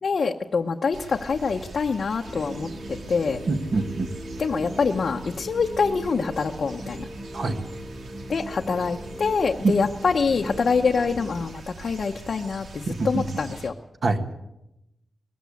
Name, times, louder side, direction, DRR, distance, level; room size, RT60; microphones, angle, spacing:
voice 1, 0.0-2.7 3.1-3.4 4.4-7.0 8.3-13.7, left 5 dB, 50° left, 1 dB, 0.8 m, -25 dB
sound 1, 0.9-13.7, right 2 dB, 85° right, 2.8 m, -43 dB
sound 2, 2.2-11.5, equal, 5° right, 1.7 m, -39 dB
voice 2, 3.5-4.1 7.3-7.6 9.6-9.8 12.9-13.4 14.0-14.3, right 3 dB, 50° right, 7 dB, 1.5 m, -25 dB
20.5 x 15.5 x 8.3 m, 0.89 s
wide cardioid pair, 175°, 0 cm